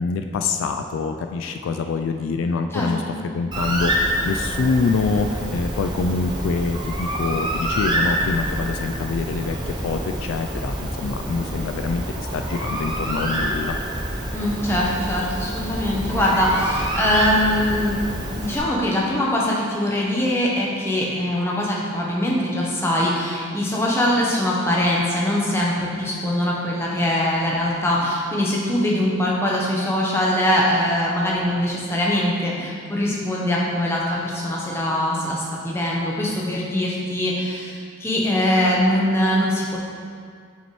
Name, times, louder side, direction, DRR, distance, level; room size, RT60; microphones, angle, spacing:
voice 1, 0.0-13.8, left 4 dB, 70° left, 6 dB, 0.3 m, -25 dB
voice 2, 2.7-3.1 14.3-18.0 18.3-39.8, left 1 dB, 10° left, -4 dB, 0.9 m, -22 dB
Bird, 3.5-18.6, right 1 dB, 20° right, 0.6 m, -27 dB
7.2 x 5.7 x 3.1 m, 2.1 s
head